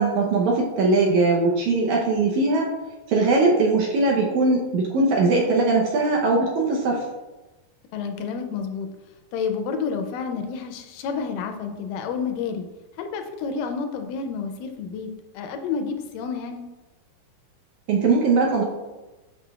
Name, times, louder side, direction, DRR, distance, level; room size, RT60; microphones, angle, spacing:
voice 1, 0.0-2.7 3.1-7.0 17.9-18.6, right 3 dB, 75° right, -2 dB, 1.9 m, -20 dB
voice 2, 7.9-8.9 9.3-12.7 13.0-16.6, left 5 dB, 80° left, 5 dB, 2.0 m, -30 dB
7.5 x 6.0 x 2.3 m, 1.1 s
omnidirectional pair, 4.0 m